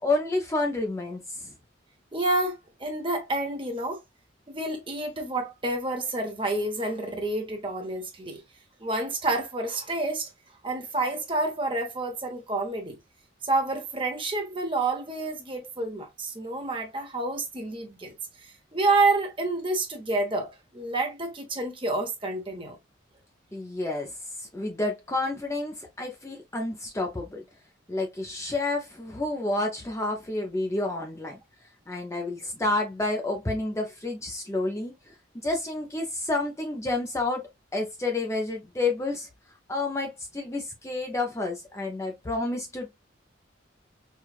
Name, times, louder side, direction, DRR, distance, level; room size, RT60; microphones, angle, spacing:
voice 1, 0.0-1.5 23.5-27.4 27.9-31.4 31.9-35.1 35.4-39.3 39.7-42.9, left 2 dB, 15° left, 0.5 m, -30 dB
voice 2, 2.1-4.0 4.5-8.4 8.8-10.3 10.6-13.0 13.4-18.1 18.4-22.8, right 2 dB, 25° right, 0.9 m, -29 dB
4.6 x 2.3 x 2.4 m
head